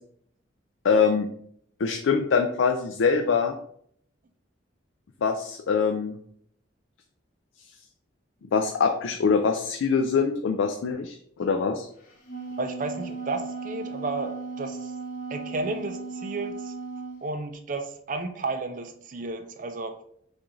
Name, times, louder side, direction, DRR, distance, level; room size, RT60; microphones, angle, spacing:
voice 1, 0.8-1.3 1.8-3.6 5.2-6.1 8.5-11.9, left 5 dB, 80° left, 5 dB, 0.4 m, -24 dB
Wind instrument woodwind instrument, 12.0-17.2, right 4 dB, 45° left, 1.0 m, -36 dB
voice 2, 12.6-14.9 15.3-16.7 17.2-20.0, right 3 dB, 45° right, 6 dB, 0.5 m, -32 dB
5.9 x 2.5 x 3.1 m, 0.66 s
head